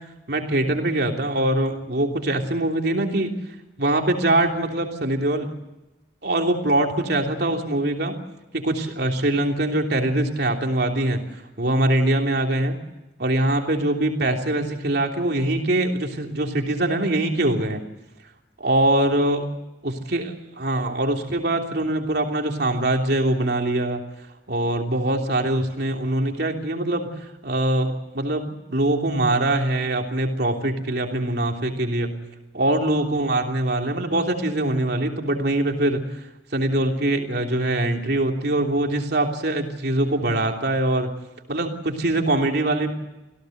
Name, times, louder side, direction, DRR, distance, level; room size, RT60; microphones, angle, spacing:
voice 1, 0.3-3.3 3.8-5.5 6.2-8.2 8.5-11.2 11.6-12.8 13.2-17.8 18.6-19.4 19.8-24.0 24.5-32.2 32.5-36.2 36.5-41.1 41.5-42.9, right 1 dB, 60° right, 3 dB, 3.2 m, -23 dB
26.5 x 17.0 x 8.0 m, 0.99 s
head